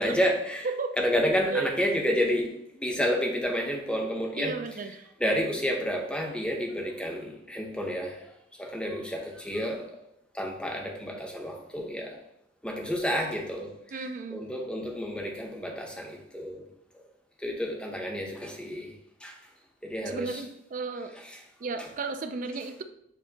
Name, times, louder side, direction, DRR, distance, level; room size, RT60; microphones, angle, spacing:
voice 1, 0.0-0.7 1.0-2.5 2.8-4.5 5.2-8.1 8.6-9.8 10.4-12.1 12.6-13.7 14.3-16.6 17.4-18.9 19.2-19.3 19.8-20.4, equal, 5° left, 1 dB, 0.7 m, -29 dB
voice 2, 4.4-5.1 13.9-14.4 20.1-21.2 21.6-22.8, right 4 dB, 45° right, 7 dB, 0.4 m, -34 dB
7.0 x 2.7 x 2.8 m, 0.77 s
head